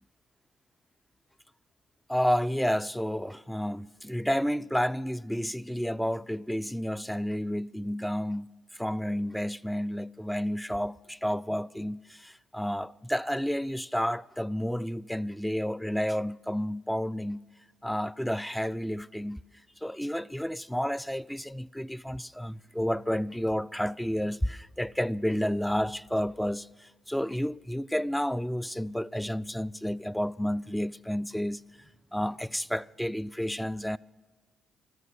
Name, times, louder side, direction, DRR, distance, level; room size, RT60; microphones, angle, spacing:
voice 1, 2.1-17.4 17.8-19.4 19.8-34.0, equal, 5° left, 0.4 m, -31 dB
14.0 x 13.5 x 6.6 m
supercardioid pair, 50°, 0 cm